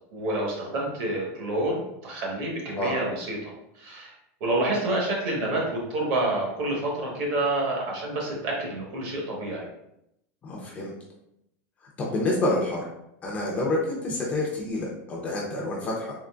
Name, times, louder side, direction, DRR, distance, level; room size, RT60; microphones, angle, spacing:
voice 1, 0.1-4.1 4.4-9.7 15.6-15.9, right 1 dB, 45° right, -2 dB, 1.1 m, -28 dB
voice 2, 10.4-10.9 12.1-12.8 13.2-16.1, left 1 dB, 20° left, -3 dB, 0.5 m, -28 dB
3.7 x 2.9 x 2.3 m, 0.79 s
supercardioid pair, 175°, 8 cm